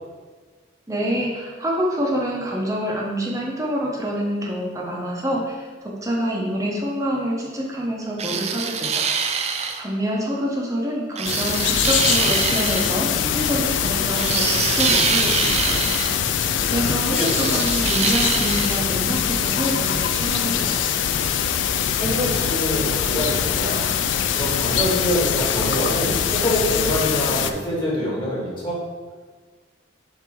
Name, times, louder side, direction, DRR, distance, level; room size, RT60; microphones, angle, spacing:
voice 1, 0.9-9.0 9.8-15.9 16.7-20.8, equal, 15° right, -2 dB, 0.9 m, -26 dB
sound 1, 8.2-9.8 11.2-12.9 14.2-16.2 17.1-18.8, right 6 dB, 35° right, 0.4 m, -24 dB
sound 2, 11.2-27.5, left 8 dB, 75° left, 0.4 m, -23 dB
voice 2, 17.1-17.7 22.0-23.9 24.3-28.8, equal, 25° left, -7 dB, 1.7 m, -25 dB
6.9 x 2.9 x 4.6 m, 1.4 s
head